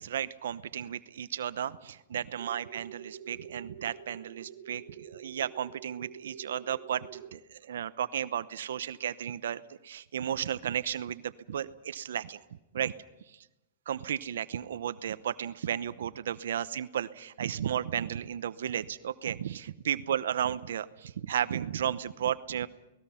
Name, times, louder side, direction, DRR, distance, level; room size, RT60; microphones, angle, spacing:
voice 1, 0.0-12.4 12.7-12.9 13.9-22.7, right 9 dB, 80° right, 14 dB, 0.8 m, -34 dB
sound 1, 2.4-7.4, right 9 dB, 55° right, 1.3 m, -48 dB
29.5 x 19.0 x 5.7 m, 0.97 s
hypercardioid pair, 150°, 0 cm